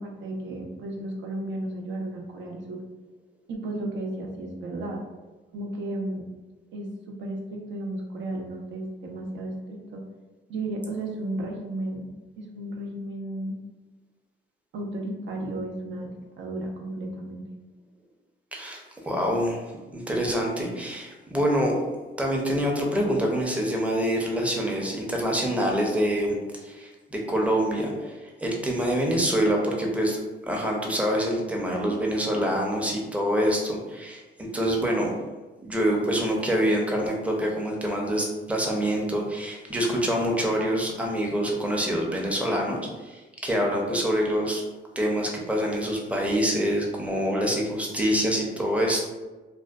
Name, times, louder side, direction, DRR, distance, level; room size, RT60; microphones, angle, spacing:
voice 1, 0.0-2.8 3.5-5.0 5.5-6.2 6.7-10.0 10.5-12.1 12.4-13.6 14.7-17.4, right 1 dB, 70° right, 1 dB, 0.6 m, -34 dB
voice 2, 18.5-19.6 19.9-21.7 22.2-30.2 30.5-35.1 35.6-44.6 45.0-49.0, equal, 5° right, -1 dB, 0.6 m, -26 dB
2.5 x 2.2 x 2.3 m, 1.2 s
cardioid pair, 90°, 20 cm